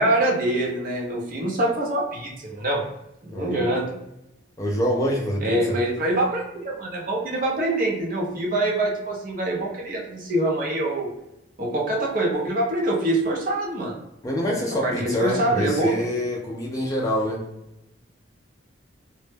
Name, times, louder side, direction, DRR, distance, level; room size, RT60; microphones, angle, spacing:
voice 1, 0.0-2.8 3.2-3.9 5.4-11.1 11.6-14.0 14.8-16.0, right 1 dB, 45° right, -1 dB, 0.6 m, -24 dB
voice 2, 4.6-5.8 14.2-17.5, equal, 15° left, -2 dB, 0.3 m, -25 dB
2.1 x 2.0 x 3.2 m, 0.88 s
head